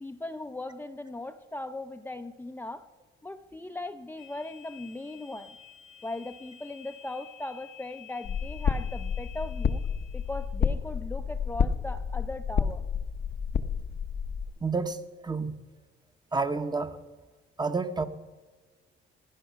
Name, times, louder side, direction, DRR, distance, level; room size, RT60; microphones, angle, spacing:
voice 1, 0.0-2.9 3.2-5.5 6.0-9.8 10.1-12.8, left 2 dB, 10° left, 7 dB, 0.6 m, -38 dB
sound 1, 4.2-10.5, left 9 dB, 75° left, 1.6 m, -51 dB
sound 2, 8.2-14.5, left 6 dB, 50° left, 0.8 m, -30 dB
voice 2, 14.6-15.5 16.3-17.0 17.6-18.1, right 4 dB, 20° right, 9 dB, 1.1 m, -29 dB
17.0 x 10.5 x 5.7 m, 1.4 s
cardioid pair, 90°, 20 cm